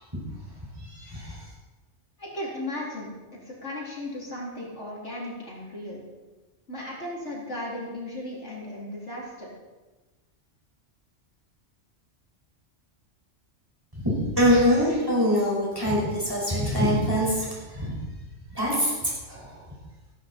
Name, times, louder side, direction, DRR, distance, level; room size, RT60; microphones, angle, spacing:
voice 1, 0.8-1.4 14.0-17.9 18.5-19.6, equal, 20° right, -5 dB, 5.7 m, -24 dB
voice 2, 2.2-6.0 6.7-9.5, left 1 dB, 75° left, -4 dB, 4.2 m, -36 dB
15.5 x 15.0 x 4.5 m, 1.2 s
omnidirectional pair, 1.2 m